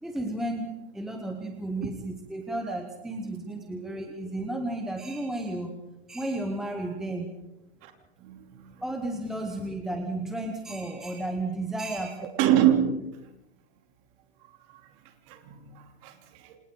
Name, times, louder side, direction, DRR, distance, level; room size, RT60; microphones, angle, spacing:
voice 1, 0.0-5.7 6.1-7.3 8.8-12.3, right 1 dB, ahead, 3 dB, 0.9 m, -33 dB
voice 2, 8.2-8.8 12.3-13.1 14.7-14.9 15.3-16.6, right 11 dB, 30° right, 5 dB, 3.0 m, -26 dB
28.5 x 27.5 x 3.8 m, 0.91 s
hypercardioid pair, 160°, 34 cm